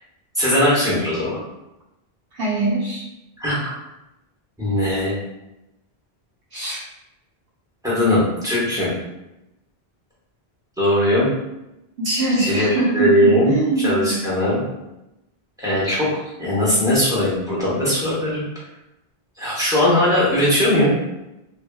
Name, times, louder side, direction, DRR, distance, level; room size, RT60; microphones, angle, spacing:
voice 1, 0.3-1.4 3.4-3.7 4.6-5.2 7.8-8.9 10.8-11.3 12.4-14.6 15.6-16.1 16.4-18.4 19.4-20.9, left 1 dB, 5° right, -8 dB, 1.0 m, -19 dB
voice 2, 2.3-3.0 6.5-6.8 12.0-14.2, right 2 dB, 65° right, -6 dB, 1.0 m, -22 dB
2.8 x 2.6 x 2.2 m, 0.91 s
omnidirectional pair, 1.1 m